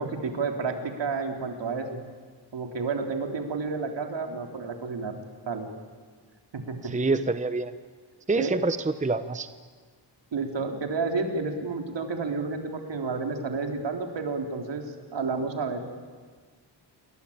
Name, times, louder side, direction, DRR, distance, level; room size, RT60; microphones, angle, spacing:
voice 1, 0.0-2.0 2.5-5.2 5.5-5.7 6.5-6.9 8.3-8.6 10.3-14.8 15.1-15.8, right 4 dB, 70° right, 4 dB, 3.8 m, -30 dB
voice 2, 6.8-7.7 8.3-9.5, right 3 dB, 15° right, 11 dB, 0.9 m, -26 dB
28.0 x 23.0 x 8.9 m, 1.5 s
wide cardioid pair, 115°, 45 cm